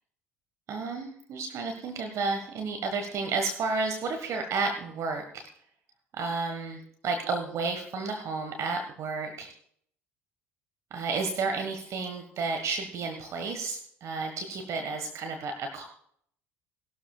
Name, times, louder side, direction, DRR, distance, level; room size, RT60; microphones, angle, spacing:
voice 1, 0.7-5.5 6.1-9.5 10.9-15.9, right 4 dB, 50° right, 4 dB, 1.5 m, -32 dB
19.0 x 12.5 x 2.4 m, 0.65 s
figure-of-eight pair, 55°, 7 cm